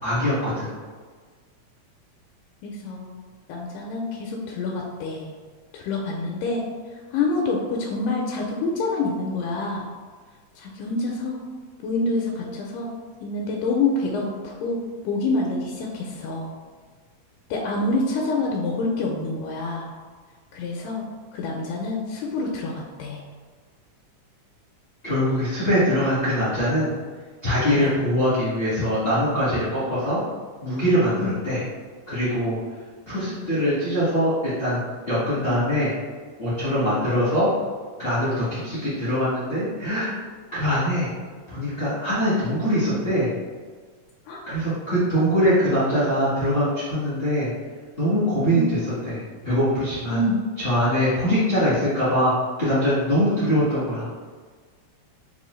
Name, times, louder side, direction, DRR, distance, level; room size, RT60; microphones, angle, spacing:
voice 1, 0.0-0.7 25.0-26.9 27.4-30.2 30.6-31.6 32.1-32.6 33.1-34.8 35.1-35.9 36.4-37.5 38.0-40.1 40.5-41.1 41.5-43.3 44.5-47.5 48.0-48.6 49.0-50.2 50.6-52.3 52.6-54.1, equal, 45° left, -12 dB, 0.7 m, -22 dB
voice 2, 2.6-3.1 3.5-5.3 5.7-6.6 6.9-9.9 10.6-11.4 11.8-12.9 13.2-16.5 17.5-19.9 20.5-21.0 21.3-23.2 27.7-28.0 31.2-31.4 44.3-44.4 48.5-48.7 50.1-50.4, left 3 dB, 85° left, -1 dB, 2.1 m, -27 dB
5.3 x 2.3 x 3.1 m, 1.5 s
omnidirectional pair, 3.6 m